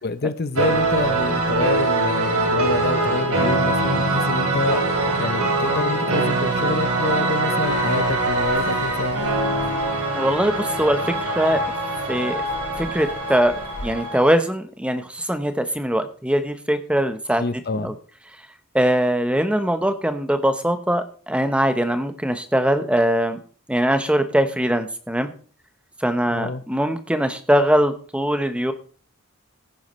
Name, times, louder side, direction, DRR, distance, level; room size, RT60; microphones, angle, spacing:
voice 1, 0.0-4.8 5.2-9.2 17.4-18.0 26.3-26.6, left 3 dB, 45° left, 12 dB, 0.7 m, -27 dB
sound 1, 0.5-14.3, right 2 dB, 85° right, 3.2 m, -23 dB
sound 2, 7.6-13.9, left 2 dB, 80° left, 2.5 m, -38 dB
voice 2, 10.1-11.6 12.1-12.4 12.8-13.5 13.8-17.4 17.8-17.9 18.7-23.4 23.7-25.3 26.0-28.7, equal, 5° right, 9 dB, 0.9 m, -21 dB
17.0 x 9.5 x 3.2 m, 0.41 s
head